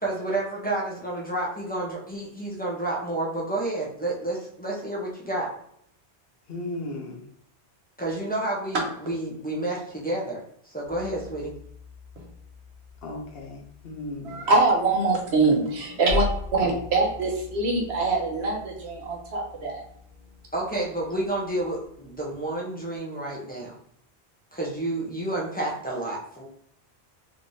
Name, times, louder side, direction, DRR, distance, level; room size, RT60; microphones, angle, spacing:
voice 1, 0.0-5.5 8.0-10.4 10.6-11.5 20.5-23.8 24.5-26.4, right 2 dB, 10° left, -4 dB, 0.8 m, -30 dB
voice 2, 6.5-7.3 13.0-14.4 16.6-16.8, left 2 dB, 65° left, 1 dB, 0.9 m, -36 dB
Hammer, 10.8-22.6, left 1 dB, 50° right, 0.7 m, -38 dB
voice 3, 14.2-16.2 16.5-19.8, right 3 dB, 75° right, 0 dB, 1.1 m, -24 dB
3.4 x 3.2 x 2.7 m, 0.68 s
omnidirectional pair, 1.1 m